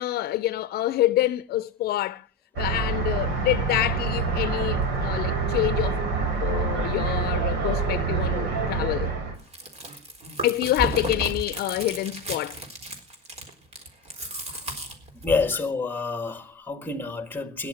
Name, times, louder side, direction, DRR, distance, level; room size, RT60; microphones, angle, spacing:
voice 1, 0.0-2.2 2.6-6.0 6.4-9.1 10.4-12.6, left 15 dB, 70° left, 0.6 m, -27 dB
sound 1, 2.6-9.3, right 4 dB, 85° right, 4.3 m, -26 dB
Chewing mastication, 9.4-15.5, right 1 dB, 40° right, 4.1 m, -34 dB
voice 2, 15.1-17.7, left 4 dB, 10° left, 1.7 m, -28 dB
17.5 x 10.5 x 6.5 m
cardioid pair, 110°, 17 cm